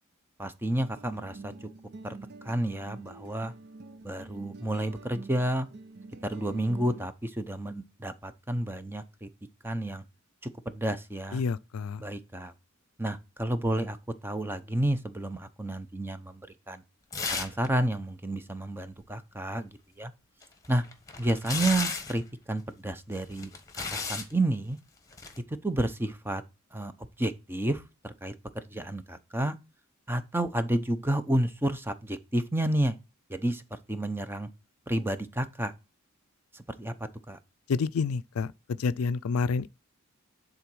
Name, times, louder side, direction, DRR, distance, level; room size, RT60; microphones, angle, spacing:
voice 1, 0.4-1.7 2.0-2.2 2.4-3.5 4.0-5.7 6.2-9.3 9.6-10.0 10.7-11.4 12.0-12.5 13.0-14.0 14.2-16.8 17.3-19.7 20.0-20.1 20.7-20.8 21.2-22.2 22.5-23.5 23.9-24.8 25.5-26.4 26.7-26.9 27.2-29.6 30.1-32.9 33.3-34.5 34.9-35.7 36.5-36.9 37.3-37.4, right 1 dB, 10° right, 0.7 m, -30 dB
sound 1, 0.7-7.1, right 3 dB, 50° right, 0.6 m, -46 dB
voice 2, 11.3-12.0 37.7-38.5 38.8-39.7, left 5 dB, 90° left, 0.4 m, -28 dB
sound 2, 17.1-17.7 17.9-18.0 20.4-22.2 23.1-24.3 25.1-25.4, left 4 dB, 15° left, 1.3 m, -34 dB
10.0 x 3.9 x 6.1 m
head